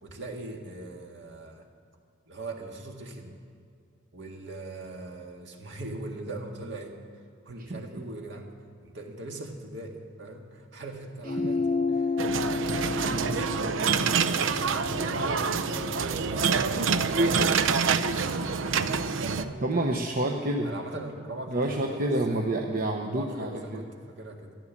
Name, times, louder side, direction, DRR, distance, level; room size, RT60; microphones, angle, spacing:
voice 1, 0.0-1.7 2.3-3.3 4.1-8.5 8.8-12.2 12.8-18.4 18.6-20.2 20.6-22.4 23.1-24.5, right 2 dB, 65° right, 2 dB, 1.8 m, -41 dB
sound 1, 11.2-16.1, left 4 dB, 30° left, 0.6 m, -31 dB
sound 2, 12.2-19.4, right 5 dB, 85° right, 0.6 m, -26 dB
voice 2, 19.6-20.7 21.5-23.8, right 1 dB, 50° right, 1 dB, 0.9 m, -29 dB
14.0 x 11.0 x 7.3 m, 2.3 s
head